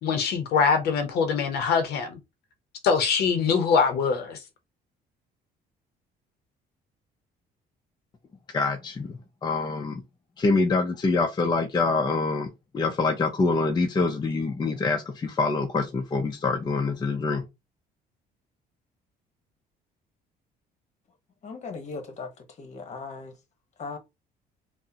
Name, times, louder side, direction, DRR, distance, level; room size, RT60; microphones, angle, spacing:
voice 1, 0.0-2.2 2.8-4.4, left 5 dB, 70° left, 0.6 m, -23 dB
voice 2, 8.5-10.0 10.4-12.5 12.7-17.5, left 3 dB, 25° left, 0.5 m, -25 dB
voice 3, 21.4-23.4 23.8-24.0, left 4 dB, 45° left, 1.0 m, -38 dB
3.6 x 2.0 x 2.7 m
cardioid pair, 110°, 17 cm